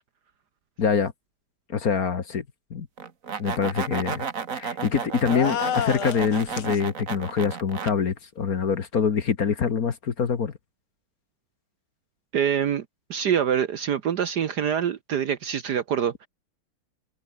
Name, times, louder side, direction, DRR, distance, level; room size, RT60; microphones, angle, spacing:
voice 1, 0.8-1.1 1.7-2.4 2.7-2.9 3.4-4.3 4.6-10.5, left 6 dB, 45° left, 1.7 m, -25 dB
sound 1, 3.0-7.9, right 6 dB, 40° right, 1.8 m, -33 dB
sound 2, 5.3-6.8, left 9 dB, 70° left, 2.2 m, -29 dB
voice 2, 12.3-12.8 13.1-16.3, right 8 dB, 60° right, 1.3 m, -25 dB
omnidirectional pair, 2.4 m